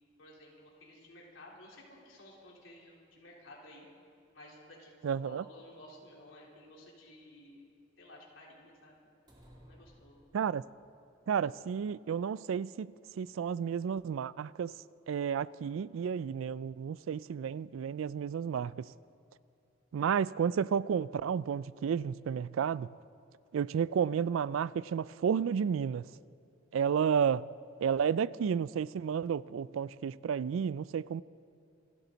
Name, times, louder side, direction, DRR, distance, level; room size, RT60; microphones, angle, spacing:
voice 1, 0.2-3.9 4.3-7.7 8.0-8.9 9.6-10.2, left 1 dB, 70° left, 3.6 m, -54 dB
voice 2, 5.0-5.4 10.3-10.6 11.3-12.9 13.2-14.7 15.1-18.9 19.9-22.9 23.5-26.1 26.7-27.5 27.8-31.2, right 7 dB, 80° right, 0.3 m, -31 dB
sound 1, 9.3-10.9, equal, 20° right, 2.6 m, -58 dB
26.5 x 12.5 x 4.0 m
head